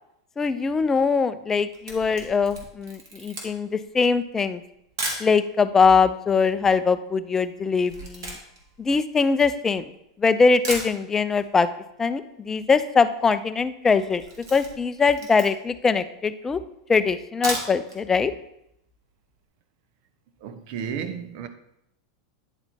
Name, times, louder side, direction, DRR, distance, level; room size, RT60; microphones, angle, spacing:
voice 1, 0.4-4.6 5.2-8.4 8.8-9.9 10.2-11.7 12.0-14.2 14.5-16.6 16.9-18.3, left 5 dB, 20° left, 0.4 m, -22 dB
Camera, 1.5-5.3 6.0-6.1 6.3-10.0 10.3-10.4 10.6-11.5 11.8-11.9 12.2-12.3 12.4-12.9 13.2-13.4 13.8-15.8 16.3-16.4 17.2-18.0 18.4-18.5 18.8-18.9, right 2 dB, 85° right, 2.0 m, -35 dB
voice 2, 20.4-21.5, right 7 dB, 60° right, 0.8 m, -33 dB
9.9 x 4.3 x 4.2 m
hypercardioid pair, 110°, 2 cm